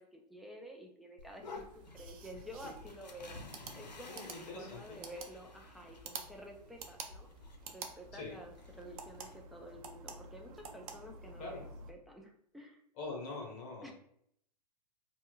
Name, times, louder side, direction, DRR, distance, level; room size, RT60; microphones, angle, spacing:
voice 1, 0.0-1.7 1.9-3.4 3.8-7.3 7.7-12.8 13.8-13.9, equal, ahead, 0 dB, 0.3 m, -51 dB
sound 1, 1.2-9.4, left 3 dB, 85° left, 0.6 m, -52 dB
sound 2, 1.5-11.9, right 4 dB, 55° right, 0.6 m, -50 dB
voice 2, 4.1-5.0 8.1-8.4 11.4-11.6 12.9-13.9, left 3 dB, 30° left, 0 dB, 1.0 m, -44 dB
4.3 x 2.2 x 2.3 m, 0.70 s
hypercardioid pair, 115°, 21 cm